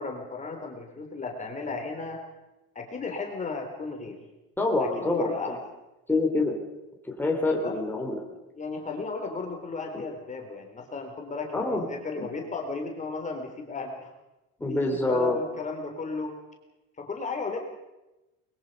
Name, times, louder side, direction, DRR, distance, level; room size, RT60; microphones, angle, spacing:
voice 1, 0.0-2.2 2.8-4.2 4.8-5.6 7.6-7.7 8.5-14.1 14.7-16.3 17.0-17.6, left 3 dB, 25° left, 2 dB, 3.6 m, -35 dB
voice 2, 4.6-5.6 6.1-6.6 7.0-8.2 9.9-10.0 11.5-11.9 12.2-12.3 14.6-15.4, left 2 dB, 5° left, 0 dB, 3.7 m, -26 dB
23.5 x 21.5 x 5.4 m, 1.0 s
cardioid pair, 115°, 30 cm